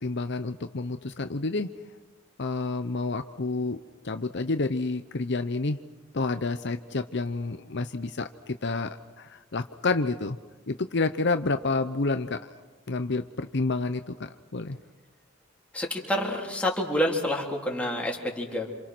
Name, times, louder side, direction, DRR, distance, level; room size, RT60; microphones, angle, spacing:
voice 1, 0.0-1.7 2.4-3.8 4.0-5.8 6.1-8.9 9.2-10.4 10.7-12.4 12.9-14.8, left 3 dB, 60° left, 9 dB, 0.8 m, -29 dB
voice 2, 15.7-18.7, equal, 5° left, -2 dB, 3.6 m, -28 dB
28.0 x 27.5 x 6.1 m, 1.2 s
head